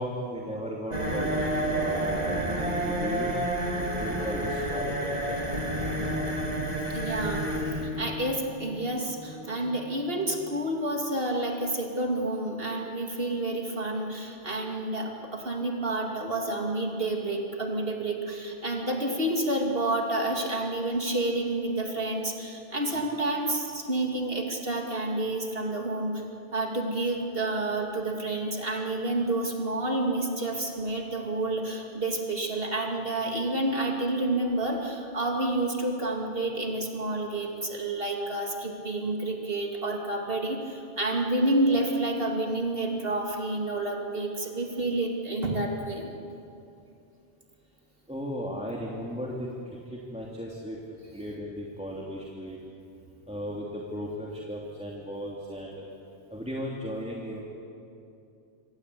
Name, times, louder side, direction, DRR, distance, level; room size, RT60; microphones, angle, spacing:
voice 1, 0.0-3.3 4.0-5.5 48.1-50.8 51.1-52.6 53.3-55.9 56.3-57.4, equal, 5° right, -3 dB, 2.9 m, -36 dB
sound 1, 0.9-10.5, right 1 dB, 35° right, 3.7 m, -30 dB
voice 2, 6.9-26.2 26.5-46.1, right 2 dB, 55° right, 1 dB, 3.0 m, -29 dB
27.5 x 25.0 x 8.5 m, 2.7 s
omnidirectional pair, 1.2 m